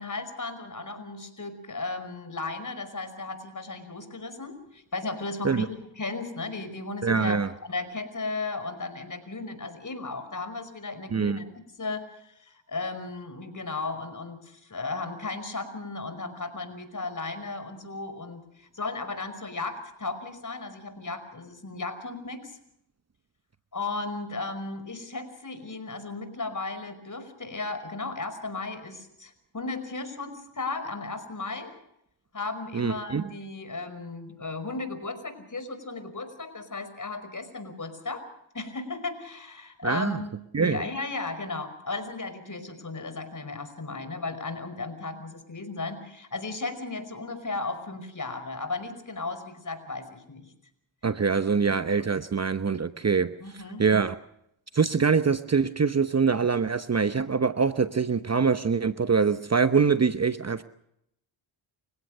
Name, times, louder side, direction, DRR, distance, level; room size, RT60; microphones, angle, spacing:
voice 1, 0.0-7.4 7.6-11.5 11.8-22.5 23.7-31.8 32.3-38.3 38.5-40.3 40.6-50.5 53.4-53.9, left 3 dB, 40° left, 11 dB, 5.4 m, -35 dB
voice 2, 7.0-7.5 11.1-11.4 32.7-33.2 39.8-40.2 40.5-40.8 51.0-53.3 53.8-54.2 54.7-60.6, right 5 dB, 30° right, 11 dB, 1.0 m, -24 dB
29.5 x 16.5 x 6.6 m, 0.77 s
cardioid pair, 50°, 49 cm